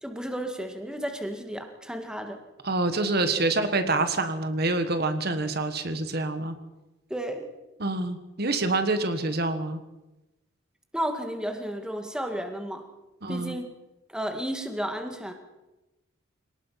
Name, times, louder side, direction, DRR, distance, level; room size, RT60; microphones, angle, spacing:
voice 1, 0.0-2.4 7.1-7.5 10.9-12.8 13.3-13.7 14.1-15.3, equal, 5° right, 4 dB, 2.1 m, -32 dB
voice 2, 2.6-6.6 7.8-9.8 13.2-13.5, right 2 dB, 50° right, 8 dB, 1.5 m, -26 dB
27.0 x 19.0 x 5.9 m, 1.0 s
head